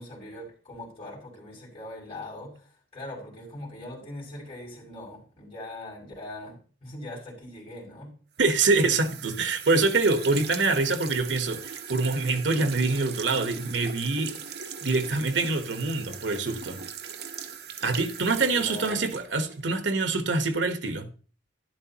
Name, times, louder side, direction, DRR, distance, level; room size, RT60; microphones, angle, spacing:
voice 1, 0.0-8.1 18.4-19.0, left 1 dB, 30° left, 6.2 m, -41 dB
sound 1, 8.4-19.8, right 7 dB, 60° right, 1.0 m, -40 dB
voice 2, 8.4-14.3 14.8-16.8 17.8-21.1, right 3 dB, 80° right, 1.2 m, -25 dB
12.0 x 11.0 x 2.9 m
head